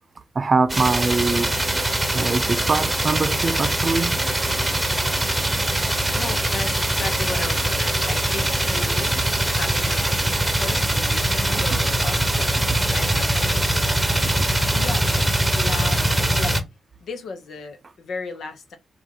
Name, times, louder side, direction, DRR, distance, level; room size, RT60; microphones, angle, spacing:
voice 1, 0.3-1.5 2.1-4.6, right 4 dB, 40° right, 0.5 m, -23 dB
sound 1, 0.7-16.6, right 1 dB, 10° right, 0.9 m, -22 dB
voice 2, 6.1-9.2 9.5-10.1 10.5-14.0 14.7-16.1 16.4-16.6 17.0-18.8, left 4 dB, 75° left, 1.0 m, -35 dB
4.3 x 2.6 x 3.7 m
cardioid pair, 75°, 0 cm